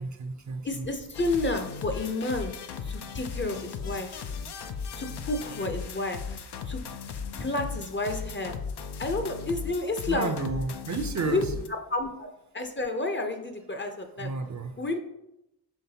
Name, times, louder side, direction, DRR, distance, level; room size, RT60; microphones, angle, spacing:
voice 1, 0.0-0.8 10.1-11.4 14.2-14.7, right 4 dB, 45° right, 7 dB, 0.6 m, -32 dB
voice 2, 0.6-2.5 2.8-4.2 5.0-6.4 6.7-6.8 7.4-8.5 9.0-10.3 11.2-11.4 11.9-12.3 12.5-14.3 14.8-15.0, left 2 dB, 25° left, 5 dB, 0.6 m, -30 dB
sound 1, 1.1-11.7, left 6 dB, 70° left, 0.6 m, -37 dB
5.8 x 3.2 x 2.8 m, 0.85 s
cardioid pair, 45°, 42 cm